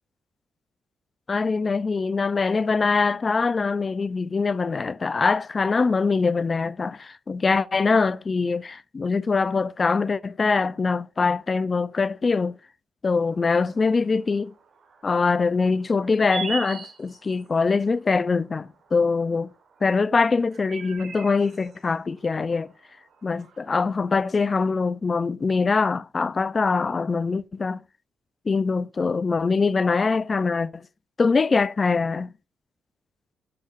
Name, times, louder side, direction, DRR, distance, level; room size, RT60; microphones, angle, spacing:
voice 1, 1.3-12.5 13.0-14.5 15.0-19.5 19.8-22.7 23.2-27.8 28.5-30.9 31.2-32.3, left 4 dB, 35° left, 0.4 m, -23 dB
sound 1, 13.1-23.9, right 5 dB, 60° right, 1.5 m, -42 dB
8.7 x 7.6 x 2.5 m
cardioid pair, 70°, 0 cm